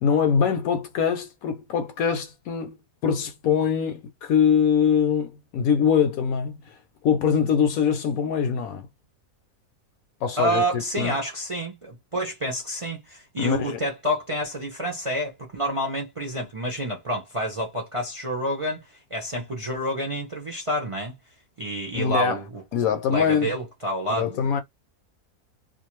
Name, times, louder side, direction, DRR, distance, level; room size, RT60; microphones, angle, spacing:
voice 1, 0.0-2.8 3.0-6.7 7.0-8.9 10.2-11.1 13.4-13.8 21.9-22.4 22.7-23.5 24.1-24.6, left 7 dB, 70° left, 0.9 m, -23 dB
voice 2, 10.4-18.8 19.1-21.1 21.6-22.6 23.1-24.5, equal, 40° right, 0.4 m, -28 dB
2.5 x 2.4 x 3.0 m
omnidirectional pair, 1.6 m